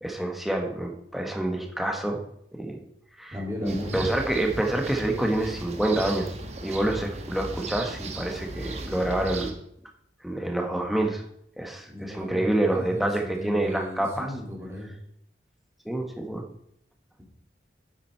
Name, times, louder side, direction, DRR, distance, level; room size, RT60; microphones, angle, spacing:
voice 1, 0.0-2.2 2.5-2.8 3.2-3.3 3.6-6.3 6.6-9.5 10.2-11.2 11.6-14.3 15.8-16.4, right 1 dB, ahead, 1 dB, 1.2 m, -27 dB
voice 2, 3.3-3.9 11.8-14.9, left 1 dB, 15° right, -3 dB, 2.4 m, -36 dB
sound 1, 3.7-9.5, right 2 dB, 35° right, 1.2 m, -36 dB
8.8 x 7.5 x 4.4 m, 0.73 s
head